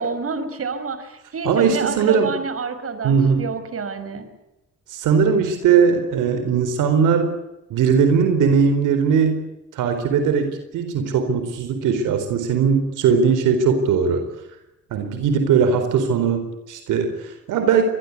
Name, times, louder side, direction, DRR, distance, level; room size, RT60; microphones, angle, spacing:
voice 1, 0.0-4.3, right 4 dB, 50° right, 10 dB, 5.6 m, -28 dB
voice 2, 1.4-2.3 3.0-3.5 4.9-7.3 7.7-9.4 9.7-14.2 14.9-17.9, right 6 dB, 90° right, 8 dB, 4.2 m, -19 dB
25.5 x 21.0 x 8.4 m, 0.93 s
cardioid pair, 90°, 30 cm